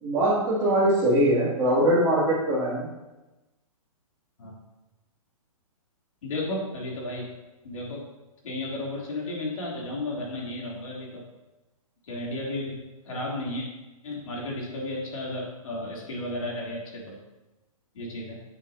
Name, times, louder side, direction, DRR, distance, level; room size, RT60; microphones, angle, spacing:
voice 1, 0.0-2.9, right 1 dB, 20° right, -7 dB, 2.7 m, -22 dB
voice 2, 6.2-7.3 7.6-8.1 8.4-11.2 12.1-12.8 13.0-13.7 14.0-17.2 17.9-18.4, left 1 dB, 65° left, -3 dB, 3.3 m, -33 dB
9.8 x 8.3 x 2.9 m, 1.1 s
hypercardioid pair, 165°, 19 cm